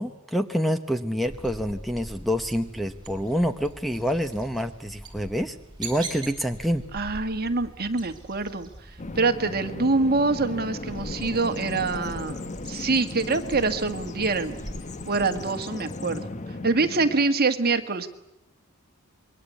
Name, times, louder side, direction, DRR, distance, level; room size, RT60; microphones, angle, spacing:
voice 1, 0.0-6.8, equal, ahead, 8 dB, 0.9 m, -27 dB
sound 1, 1.2-15.4, right 2 dB, 20° right, 6.8 m, -43 dB
voice 2, 6.9-8.7 9.1-12.4 12.6-14.6 15.1-16.2 16.6-18.1, right 3 dB, 45° right, 8 dB, 1.7 m, -25 dB
Bird vocalization bird call bird song, 9.0-17.3, left 2 dB, 35° left, 1.0 m, -36 dB
27.5 x 22.5 x 8.4 m, 0.84 s
head